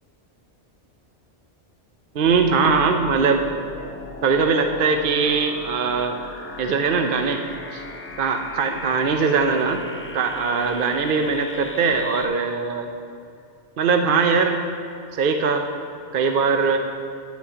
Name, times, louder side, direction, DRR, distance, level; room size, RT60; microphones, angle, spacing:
voice 1, 2.1-3.5 4.2-6.2 6.6-7.4 7.7-7.8 8.2-9.8 10.1-12.9 13.8-14.6 15.2-15.7 16.1-16.8, right 5 dB, 55° right, 5 dB, 0.8 m, -21 dB
sound 1, 2.3-12.3, left 2 dB, 15° left, 0.4 m, -38 dB
9.5 x 6.2 x 8.5 m, 2.5 s
omnidirectional pair, 1.1 m